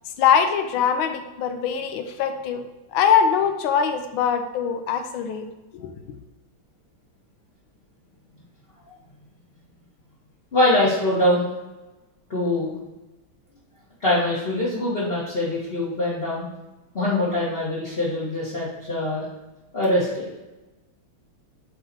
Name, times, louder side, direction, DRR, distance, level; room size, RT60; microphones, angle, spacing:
voice 1, 0.2-2.6 2.9-5.5 5.7-6.0, left 7 dB, 80° left, 7 dB, 1.4 m, -22 dB
voice 2, 10.5-11.5 12.3-12.7 14.0-16.5 16.9-19.2 19.7-20.2, left 1 dB, 30° left, -8 dB, 1.5 m, -23 dB
7.0 x 4.0 x 4.1 m, 1.1 s
omnidirectional pair, 2.3 m